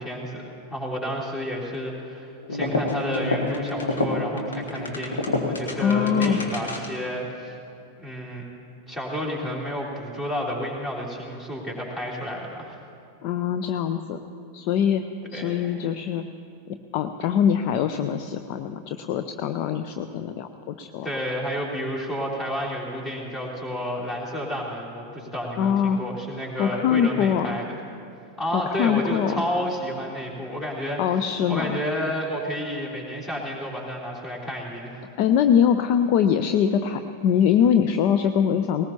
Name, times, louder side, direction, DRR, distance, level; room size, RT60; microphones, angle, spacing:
voice 1, 0.0-7.6 8.0-8.4 8.9-12.7 15.3-15.9 21.0-27.6 28.4-35.0, equal, 20° left, -3 dB, 3.3 m, -31 dB
sound 1, 2.4-7.1, left 2 dB, 70° left, 1.6 m, -28 dB
voice 2, 5.8-6.4 13.2-14.2 14.5-15.0 15.3-16.2 16.7-21.1 25.6-26.0 26.6-27.5 28.5-29.4 31.0-31.8 35.2-38.8, left 8 dB, 45° left, 9 dB, 0.5 m, -23 dB
19.5 x 19.0 x 2.9 m, 2.5 s
figure-of-eight pair, 90°, 0 cm